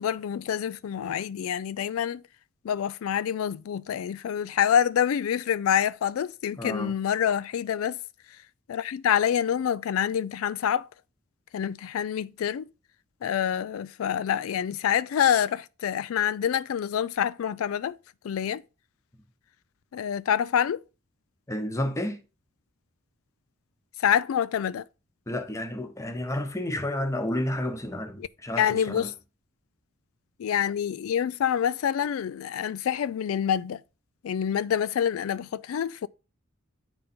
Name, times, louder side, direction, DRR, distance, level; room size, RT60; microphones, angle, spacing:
voice 1, 0.0-2.2 2.6-8.0 8.7-10.9 11.5-12.7 13.2-18.0 18.2-18.6 19.9-20.8 24.0-24.8 28.2-28.3 28.6-29.1 30.4-33.8 34.2-36.1, left 9 dB, 90° left, 0.3 m, -26 dB
voice 2, 6.6-6.9 21.5-22.2 25.3-29.1, left 1 dB, 15° left, 0.9 m, -31 dB
9.8 x 3.8 x 4.3 m
head